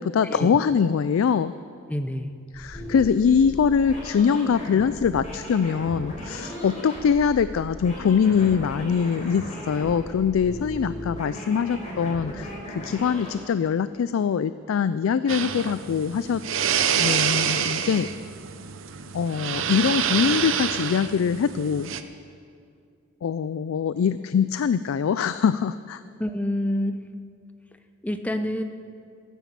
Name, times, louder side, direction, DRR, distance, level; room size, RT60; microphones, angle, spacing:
voice 1, 0.0-1.5 2.5-16.4 16.9-18.1 19.1-21.9 23.2-26.0, left 6 dB, 80° left, 14 dB, 0.3 m, -23 dB
voice 2, 1.9-2.3 26.2-27.0 28.0-28.6, left 1 dB, 5° left, 8 dB, 0.6 m, -27 dB
sound 1, 2.5-13.3, equal, 35° left, 3.8 m, -37 dB
sound 2, 15.3-22.0, right 8 dB, 70° right, 0.7 m, -27 dB
15.0 x 9.2 x 7.4 m, 2.3 s
head